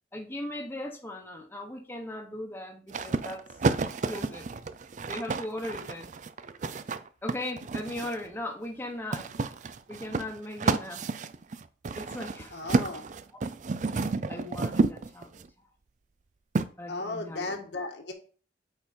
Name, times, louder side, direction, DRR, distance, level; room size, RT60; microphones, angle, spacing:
voice 1, 0.1-3.4 4.1-4.5 5.1-6.1 7.2-9.5 9.9-11.0 12.0-12.6 13.3-13.4 14.3-15.4 16.8-17.6, left 1 dB, 10° left, 2 dB, 1.0 m, -38 dB
sound 1, 2.9-8.3 9.1-15.5 16.6-16.7, right 3 dB, 45° right, 0.4 m, -30 dB
voice 2, 12.5-13.0 16.9-18.1, left 2 dB, 85° left, 2 dB, 1.7 m, -35 dB
8.4 x 4.4 x 4.3 m, 0.40 s
head